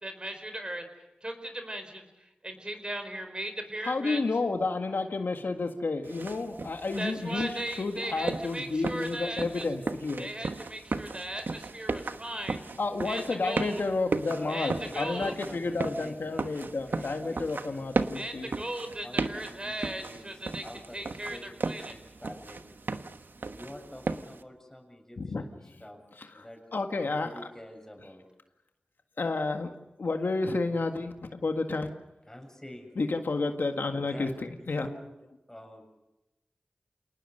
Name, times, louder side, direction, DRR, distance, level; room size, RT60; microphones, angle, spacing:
voice 1, 0.0-0.8 1.2-4.2 7.0-9.6 10.2-12.6 13.0-13.8 14.5-15.3 18.1-20.6 20.9-21.9, right 1 dB, 30° right, 7 dB, 4.5 m, -37 dB
voice 2, 3.8-10.3 12.8-18.5 25.2-25.4 26.2-26.4 26.7-27.3 29.2-29.7 30.0-31.9 33.0-34.9, left 3 dB, 80° left, 5 dB, 1.8 m, -31 dB
sound 1, 6.0-24.4, right 3 dB, 75° right, 1.2 m, -36 dB
voice 3, 14.1-17.4 17.6-17.9 19.0-20.3 20.6-22.6 23.5-25.5 25.8-26.0 26.3-26.6 27.0-28.2 32.3-33.0 34.0-34.3 34.6-35.0 35.5-35.8, left 1 dB, 15° left, 4 dB, 7.0 m, -46 dB
28.0 x 19.0 x 6.6 m, 0.96 s
cardioid pair, 45°, 3 cm